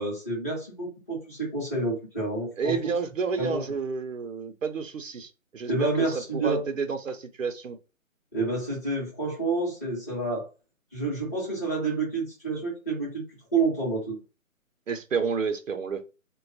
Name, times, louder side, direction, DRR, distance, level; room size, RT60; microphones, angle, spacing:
voice 1, 0.0-2.8 3.4-3.6 5.7-6.6 8.3-10.5 10.9-13.2 13.5-14.2, right 3 dB, 10° left, -7 dB, 0.8 m, -29 dB
voice 2, 2.6-5.9 6.3-7.8 14.9-16.0, right 5 dB, 65° right, 8 dB, 0.7 m, -30 dB
3.7 x 2.2 x 2.6 m, 0.31 s
figure-of-eight pair, 155°, 41 cm